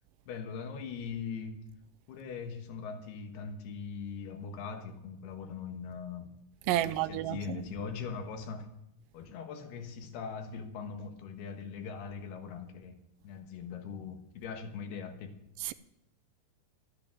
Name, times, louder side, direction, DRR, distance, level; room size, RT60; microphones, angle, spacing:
voice 1, 0.3-1.6 2.1-6.3 6.7-8.7 9.1-13.0 13.2-15.3, left 6 dB, 90° left, 3.4 m, -41 dB
voice 2, 6.7-7.4 15.6-15.7, right 14 dB, 85° right, 1.9 m, -30 dB
13.0 x 10.5 x 7.5 m
omnidirectional pair, 4.5 m